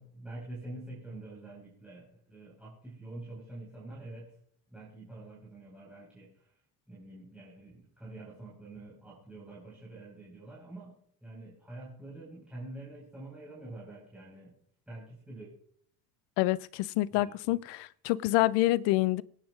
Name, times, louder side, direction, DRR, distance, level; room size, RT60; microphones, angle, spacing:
voice 1, 0.0-4.3 4.7-6.3 6.9-14.6 14.9-15.5 17.1-17.6, right 2 dB, 5° right, 4.6 m, -46 dB
voice 2, 16.4-19.2, left 17 dB, 75° left, 0.6 m, -27 dB
24.5 x 8.9 x 2.4 m
cardioid pair, 145°, 42 cm